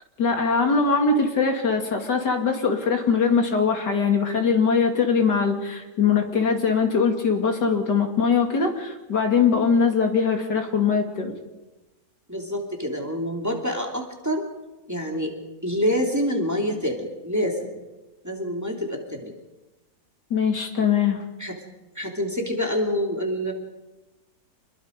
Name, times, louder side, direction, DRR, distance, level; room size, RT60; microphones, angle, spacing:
voice 1, 0.2-11.3 20.3-21.2, left 5 dB, 85° left, 4 dB, 3.2 m, -21 dB
voice 2, 12.3-14.4 14.9-15.3 15.6-17.8 18.2-19.3 21.4-21.6 21.9-23.5, equal, 10° right, 1 dB, 2.9 m, -26 dB
26.5 x 21.5 x 5.2 m, 1.1 s
omnidirectional pair, 1.8 m